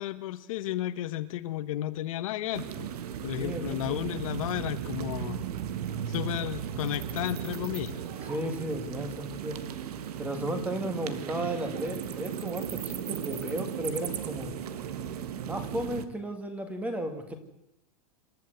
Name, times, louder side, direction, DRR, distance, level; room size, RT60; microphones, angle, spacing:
voice 1, 0.0-2.9 3.2-5.4 6.1-8.0, left 13 dB, 60° left, 11 dB, 1.1 m, -33 dB
sound 1, 2.5-16.0, right 9 dB, 80° right, 1.6 m, -36 dB
voice 2, 3.4-4.0 8.2-9.6 10.2-14.5 15.4-17.3, right 1 dB, 5° right, 8 dB, 1.8 m, -34 dB
Zipper (clothing), 7.1-9.1 10.3-12.0 12.3-14.8, right 3 dB, 30° right, 4.9 m, -49 dB
27.0 x 12.0 x 7.9 m, 0.85 s
supercardioid pair, 165°, 20 cm